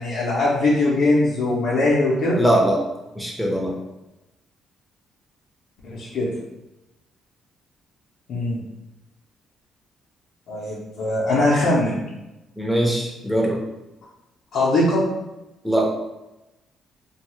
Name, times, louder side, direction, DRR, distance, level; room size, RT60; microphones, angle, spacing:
voice 1, 0.0-2.4 5.8-6.3 8.3-8.6 10.5-12.0 14.5-15.0, left 2 dB, 75° left, -8 dB, 0.6 m, -21 dB
voice 2, 2.4-2.8 3.1-3.7 12.6-13.6 15.6-15.9, right 1 dB, ahead, -2 dB, 0.7 m, -21 dB
2.6 x 2.3 x 3.0 m, 0.97 s
cardioid pair, 90°, 0 cm